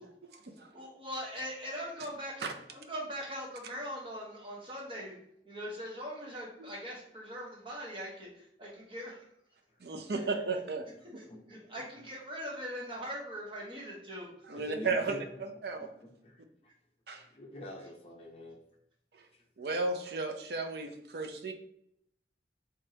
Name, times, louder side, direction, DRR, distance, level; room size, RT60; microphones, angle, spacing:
voice 1, 0.7-5.1 5.4-9.2 10.1-10.3 11.1-14.5, equal, 30° right, -4 dB, 1.1 m, -41 dB
voice 2, 9.8-10.8 14.5-15.9 17.1-17.2 19.6-21.5, right 3 dB, 60° right, 5 dB, 0.5 m, -34 dB
voice 3, 11.3-11.6 14.5-15.4 15.8-15.9 16.2-16.4 17.1-18.6, left 1 dB, 30° left, -1 dB, 0.7 m, -45 dB
3.5 x 3.4 x 2.8 m, 0.73 s
head